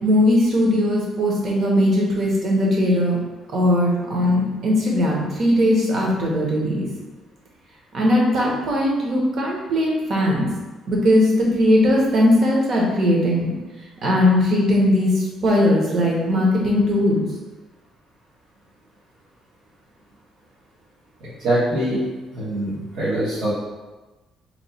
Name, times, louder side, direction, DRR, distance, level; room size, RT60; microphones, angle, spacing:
voice 1, 0.0-3.2 3.5-6.9 7.9-10.5 10.8-13.5 14.0-17.2, left 1 dB, 45° right, -3 dB, 0.8 m, -19 dB
voice 2, 21.2-22.0 22.3-23.5, right 1 dB, 85° right, -12 dB, 1.1 m, -23 dB
3.0 x 2.2 x 4.1 m, 1.2 s
cardioid pair, 155°, 0 cm